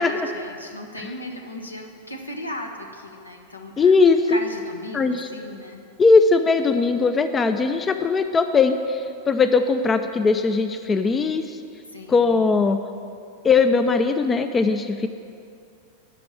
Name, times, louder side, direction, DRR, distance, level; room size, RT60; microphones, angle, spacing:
voice 1, 0.0-4.0 4.3-5.8 11.9-12.3, left 1 dB, 80° left, 4 dB, 1.1 m, -36 dB
voice 2, 3.8-4.4 4.9-5.3 6.0-11.6 12.1-12.8 13.4-15.1, left 4 dB, 20° left, 9 dB, 0.5 m, -19 dB
11.0 x 6.0 x 8.6 m, 2.5 s
figure-of-eight pair, 90°, 0 cm